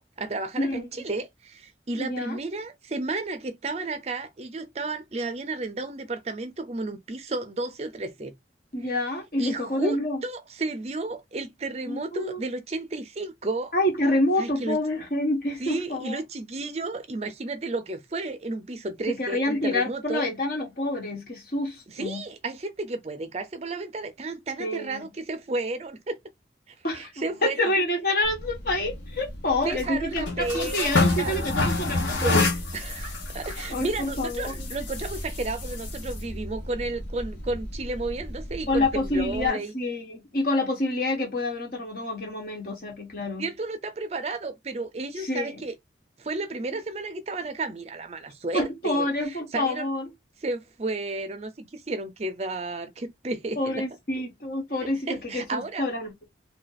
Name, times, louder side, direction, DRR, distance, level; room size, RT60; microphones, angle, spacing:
voice 1, 0.0-8.3 8.8-9.0 9.4-13.7 14.4-14.8 15.6-20.2 21.9-26.2 26.7-27.7 29.6-31.5 32.2-39.7 43.4-45.7 46.2-49.9 50.4-53.8 54.8-55.8, right 2 dB, 35° right, 0.5 m, -32 dB
voice 2, 0.6-0.9 1.9-2.4 8.7-10.2 11.9-12.4 13.7-16.2 19.1-22.3 24.6-25.1 26.8-27.1 27.4-30.3 30.5-32.3 33.7-34.5 38.7-43.5 45.2-45.6 48.5-50.1 53.6-56.3, left 1 dB, 55° left, 1.3 m, -27 dB
sound 1, 28.2-39.5, left 2 dB, 90° left, 1.1 m, -30 dB
2.8 x 2.4 x 3.9 m
head